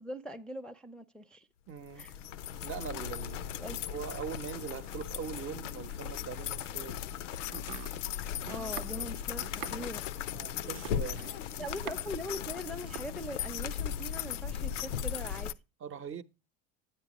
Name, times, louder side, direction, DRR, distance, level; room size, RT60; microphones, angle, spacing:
voice 1, 0.0-1.5 2.0-2.1 3.6-3.8 8.5-10.1 11.6-15.5, equal, 5° left, 0.5 m, -41 dB
voice 2, 1.7-2.1 2.6-7.1 10.3-11.4 15.8-16.2, right 7 dB, 35° right, 0.8 m, -42 dB
sound 1, 1.9-15.5, left 10 dB, 85° left, 0.6 m, -37 dB
Domestic sounds home sounds, 7.4-12.2 12.5-13.1, right 12 dB, 85° right, 0.8 m, -46 dB
9.7 x 8.8 x 2.9 m
hypercardioid pair, 95°, 36 cm